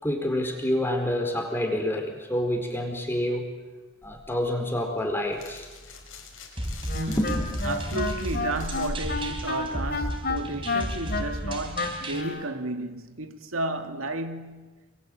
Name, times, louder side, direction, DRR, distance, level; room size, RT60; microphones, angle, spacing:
voice 1, 0.0-3.5 4.0-5.7 7.1-7.4, left 1 dB, 10° left, 4.4 m, -27 dB
sound 1, 4.0-10.3, left 2 dB, 75° left, 5.3 m, -43 dB
sound 2, 6.6-12.2, right 1 dB, 25° right, 3.5 m, -33 dB
Wind instrument woodwind instrument, 6.9-12.5, left 3 dB, 45° left, 2.8 m, -30 dB
voice 2, 6.9-14.7, right 2 dB, 80° right, 2.1 m, -33 dB
28.5 x 23.0 x 9.1 m
head